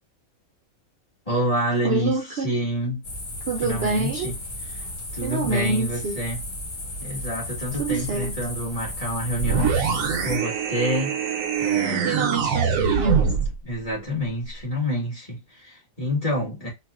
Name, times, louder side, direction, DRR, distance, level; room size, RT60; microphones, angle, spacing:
voice 1, 1.3-3.0 3.6-4.4 5.1-6.4 7.0-11.2 11.6-12.3 13.6-16.7, equal, 25° left, 1.8 m, -28 dB
voice 2, 1.8-2.5 3.5-4.3 5.2-6.2 7.8-8.4 12.0-13.3, right 3 dB, 55° right, 0.8 m, -26 dB
sound 1, 3.0-10.4, left 1 dB, 75° left, 1.8 m, -34 dB
sound 2, 9.4-13.6, right 7 dB, 75° right, 1.1 m, -23 dB
4.1 x 2.5 x 2.4 m
omnidirectional pair, 1.4 m